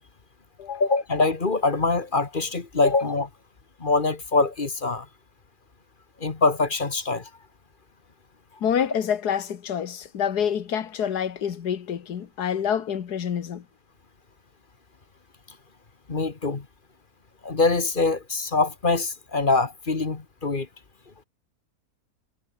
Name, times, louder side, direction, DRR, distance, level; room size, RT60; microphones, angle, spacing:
voice 1, 0.8-3.3 3.8-5.1 6.2-7.3 16.1-16.6 17.4-20.7, left 3 dB, 35° left, 1.7 m, -24 dB
voice 2, 8.6-13.7, left 8 dB, 90° left, 1.9 m, -27 dB
omnidirectional pair, 1.6 m